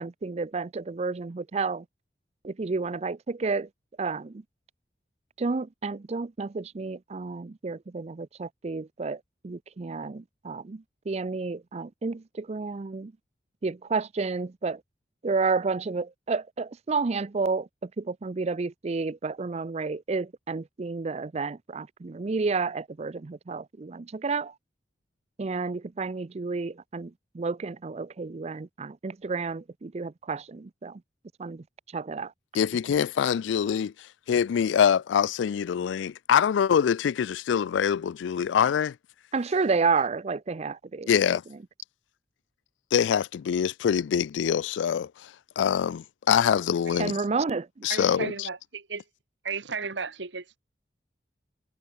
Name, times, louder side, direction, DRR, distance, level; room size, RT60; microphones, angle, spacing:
voice 1, 0.0-1.8 2.4-3.7 4.0-4.3 5.4-13.1 13.6-14.8 15.2-17.7 18.0-24.5 25.4-31.0 31.4-31.6 31.9-32.3 39.3-41.4 47.0-47.7, right 4 dB, 35° right, 0.5 m, -30 dB
voice 2, 32.5-33.9 34.3-38.9 41.1-41.4 42.9-45.1 45.6-47.2 47.8-48.5, left 8 dB, 85° left, 0.3 m, -24 dB
voice 3, 47.9-49.0 49.4-50.6, right 5 dB, 80° right, 1.7 m, -34 dB
head